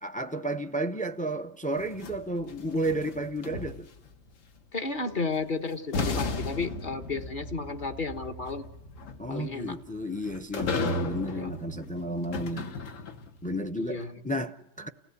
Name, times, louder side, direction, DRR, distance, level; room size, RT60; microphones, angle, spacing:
voice 1, 0.0-3.9 9.2-12.7 13.4-14.9, right 1 dB, 10° left, 0.4 m, -32 dB
throwing stuff in dumpster booms, 1.8-4.1 5.4-5.5 5.9-13.4, left 3 dB, 85° left, 1.6 m, -35 dB
voice 2, 4.7-8.7 9.3-9.8 11.4-11.5 13.7-14.2, left 3 dB, 40° left, 1.3 m, -33 dB
30.0 x 16.0 x 8.4 m
omnidirectional pair, 1.3 m